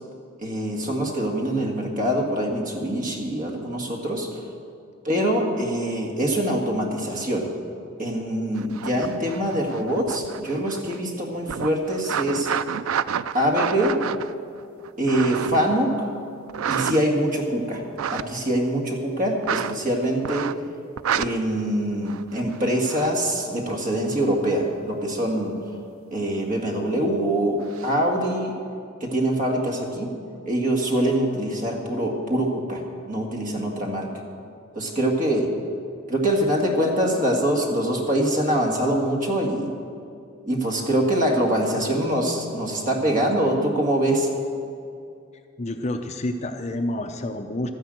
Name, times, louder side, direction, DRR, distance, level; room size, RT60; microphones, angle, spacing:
voice 1, 0.4-4.4 5.0-7.5 8.0-12.5 13.3-14.0 15.0-16.1 16.7-17.8 18.1-20.5 21.1-25.5 26.1-28.5 29.0-30.2 30.5-34.1 34.7-35.5 36.1-39.7 40.5-44.3, right 1 dB, 40° right, 0 dB, 2.0 m, -24 dB
sound 1, 8.6-11.1 11.4-15.7 16.5-17.4 17.8-18.2 19.4-19.8 20.2-20.7 21.0-21.3 22.0-23.1 27.6-27.9, right 8 dB, 80° right, 0.4 m, -29 dB
voice 2, 45.6-47.7, left 1 dB, 30° left, 6 dB, 0.6 m, -29 dB
12.5 x 10.5 x 7.8 m, 2.5 s
head